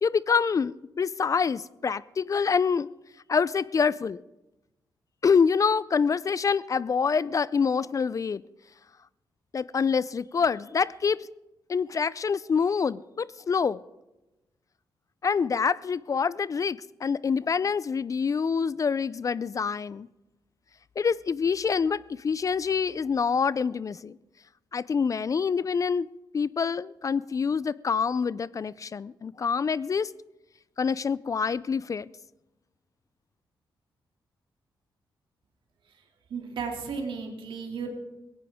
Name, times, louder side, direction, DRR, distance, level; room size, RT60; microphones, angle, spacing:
voice 1, 0.0-2.9 3.3-4.2 5.2-8.4 9.5-11.3 11.7-13.8 15.2-20.1 21.0-24.2 24.7-26.1 26.3-30.1 30.8-32.1, left 6 dB, 40° left, 20 dB, 0.4 m, -26 dB
voice 2, 36.3-37.9, right 5 dB, 75° right, 3 dB, 2.5 m, -34 dB
18.0 x 17.0 x 3.6 m, 0.99 s
cardioid pair, 75°, 9 cm